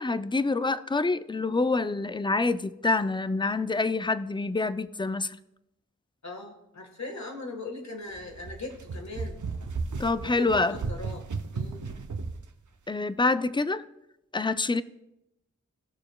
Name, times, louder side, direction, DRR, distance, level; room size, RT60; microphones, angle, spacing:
voice 1, 0.0-5.4 10.0-10.7 12.9-13.8 14.3-14.8, left 3 dB, 15° left, 0.3 m, -26 dB
voice 2, 6.2-9.4 10.2-11.2 11.5-11.9, left 3 dB, 65° left, 1.4 m, -39 dB
sound 1, 8.1-12.5, right 4 dB, 85° right, 0.6 m, -35 dB
18.0 x 6.6 x 2.2 m
wide cardioid pair, 55°, 30 cm